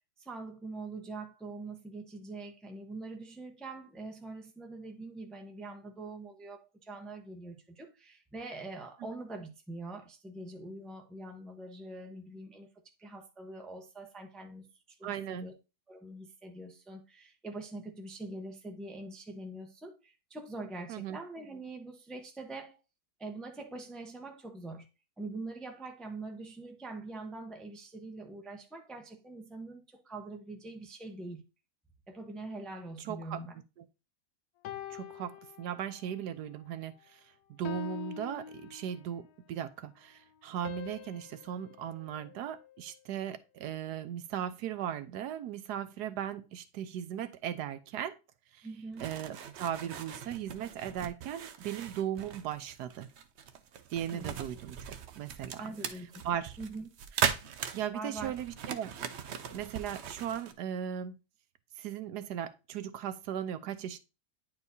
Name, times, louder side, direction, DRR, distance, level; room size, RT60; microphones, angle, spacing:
voice 1, 0.2-12.7 13.0-15.5 15.9-22.8 23.2-24.9 25.2-31.4 32.1-33.5 48.6-49.1 54.1-54.4 55.6-56.2 56.6-56.9 57.9-58.3, right 2 dB, ahead, 0.7 m, -44 dB
voice 2, 15.0-15.5 20.9-21.2 33.0-33.4 33.8-33.9 34.9-37.2 37.5-48.2 48.5-48.7 49.0-53.1 53.9-56.6 57.7-58.9 59.5-61.1 61.8-64.0, right 9 dB, 75° right, 1.2 m, -37 dB
sound 1, 34.6-36.2 36.7-37.0 37.6-39.3 40.6-43.0, left 9 dB, 70° left, 1.0 m, -45 dB
sound 2, 49.0-60.5, right 7 dB, 60° right, 0.7 m, -39 dB
9.6 x 4.5 x 2.7 m
omnidirectional pair, 1.8 m